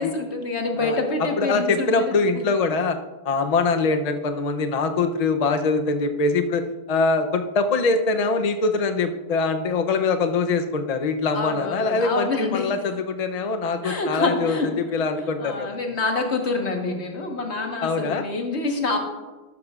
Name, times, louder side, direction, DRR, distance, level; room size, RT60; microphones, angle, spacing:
voice 1, 0.0-2.4 11.3-12.7 13.8-14.7 15.4-19.0, left 3 dB, 80° left, 2 dB, 1.7 m, -26 dB
voice 2, 0.8-3.0 3.2-15.8 17.8-18.2, left 4 dB, 40° left, 6 dB, 0.7 m, -23 dB
13.0 x 12.0 x 2.4 m, 1.2 s
omnidirectional pair, 1.1 m